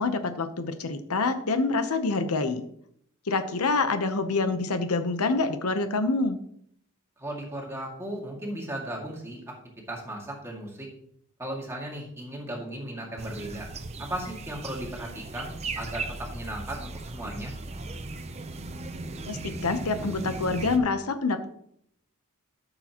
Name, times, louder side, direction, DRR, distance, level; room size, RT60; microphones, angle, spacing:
voice 1, 0.0-2.6 3.3-6.4 19.3-21.5, left 3 dB, 80° left, 9 dB, 0.8 m, -26 dB
voice 2, 7.2-9.4 9.9-10.9 11.4-13.7 14.0-17.5, right 1 dB, 10° right, -1 dB, 2.0 m, -36 dB
sound 1, 13.2-20.8, right 2 dB, 30° right, 0.6 m, -37 dB
12.5 x 6.7 x 2.9 m, 0.70 s
head